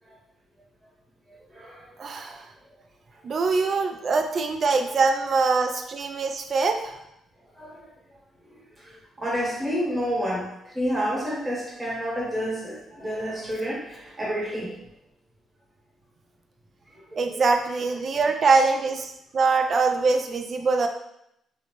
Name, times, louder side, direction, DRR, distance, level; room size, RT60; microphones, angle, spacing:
voice 1, 2.0-2.4 3.2-6.9 17.2-20.9, right 4 dB, 50° right, 5 dB, 0.3 m, -23 dB
voice 2, 9.2-10.4 10.7-14.8 18.4-18.5, equal, 15° right, -5 dB, 1.1 m, -29 dB
2.7 x 2.1 x 3.0 m, 0.79 s
cardioid pair, 90°, 0 cm